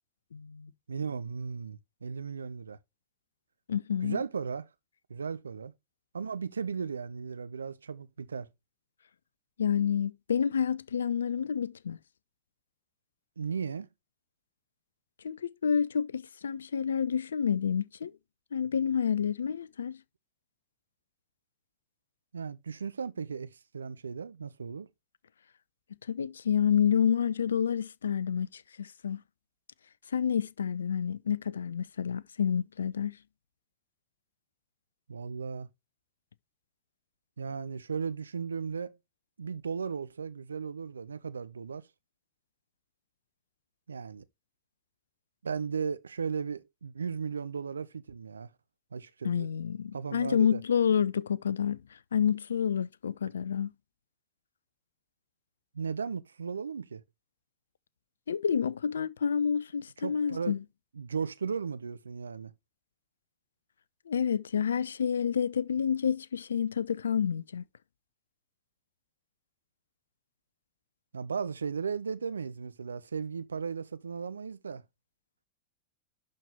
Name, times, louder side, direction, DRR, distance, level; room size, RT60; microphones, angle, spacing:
voice 1, 0.3-0.7 3.7-4.2 9.6-12.0 15.2-18.1 18.5-20.0 26.1-29.2 30.1-33.2 49.2-51.8 52.1-53.7 58.3-60.6 64.1-67.6, left 7 dB, 70° left, 0.4 m, -29 dB
voice 2, 0.9-2.8 4.0-4.7 5.1-5.7 6.1-8.5 13.4-13.9 22.3-24.9 35.1-35.7 37.4-39.0 39.4-41.8 43.9-44.2 45.4-48.5 48.9-49.5 49.9-50.6 55.7-57.0 60.0-60.6 60.9-62.5 71.1-74.8, right 6 dB, 75° right, 0.6 m, -36 dB
11.5 x 4.3 x 3.3 m
figure-of-eight pair, 90°, 0 cm